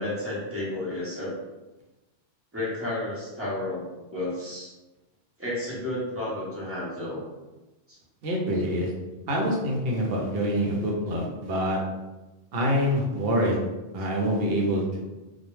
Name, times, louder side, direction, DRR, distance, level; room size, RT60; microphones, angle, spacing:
voice 1, 0.0-1.3 2.5-3.9 4.1-4.7 5.4-7.2 7.9-8.0, left 1 dB, 15° right, -7 dB, 0.5 m, -31 dB
voice 2, 8.2-8.9 9.3-11.8 12.5-13.6 13.9-15.0, equal, 65° right, -1 dB, 0.7 m, -26 dB
2.2 x 2.1 x 3.0 m, 1.1 s
omnidirectional pair, 1.2 m